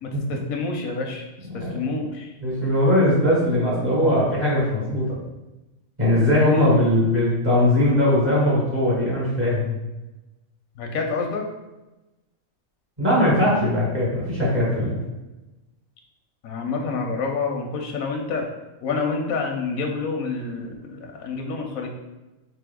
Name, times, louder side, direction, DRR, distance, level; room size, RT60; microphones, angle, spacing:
voice 1, 0.0-1.2 1.7-2.3 10.8-11.5 16.4-18.5 18.8-21.9, left 4 dB, 90° left, 2 dB, 1.1 m, -28 dB
voice 2, 1.5-1.9 2.4-5.1 6.0-9.7 13.0-15.0, left 1 dB, 30° right, -7 dB, 1.6 m, -20 dB
3.6 x 3.4 x 3.6 m, 1.0 s
omnidirectional pair, 1.4 m